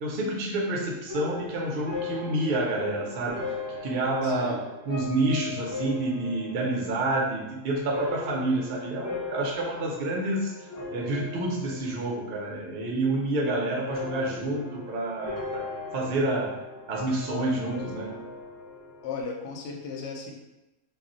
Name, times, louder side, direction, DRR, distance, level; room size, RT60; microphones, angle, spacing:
voice 1, 0.0-3.4 3.8-10.5 10.9-15.6 15.9-16.6 16.9-18.2, right 2 dB, 60° right, -2 dB, 0.6 m, -28 dB
sound 1, 1.1-12.5 12.8-13.4 13.9-19.2, left 3 dB, 20° left, 0.5 m, -39 dB
voice 2, 4.2-4.6 19.0-20.3, left 4 dB, 65° left, 0 dB, 0.8 m, -36 dB
2.3 x 2.1 x 3.8 m, 0.96 s
omnidirectional pair, 1.5 m